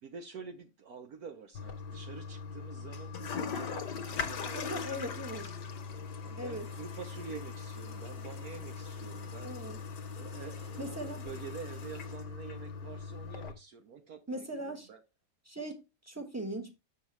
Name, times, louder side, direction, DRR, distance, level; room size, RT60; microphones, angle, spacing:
voice 1, 0.0-5.5 6.2-9.6 10.2-15.0, right 6 dB, 65° right, 1.1 m, -47 dB
Toilet flush, 1.5-13.5, left 5 dB, 70° left, 1.4 m, -40 dB
voice 2, 4.5-5.5 6.4-6.7 9.4-9.8 10.8-11.2 14.3-14.9 15.5-16.7, right 1 dB, 15° right, 0.7 m, -39 dB
7.2 x 6.0 x 3.2 m
omnidirectional pair, 1.9 m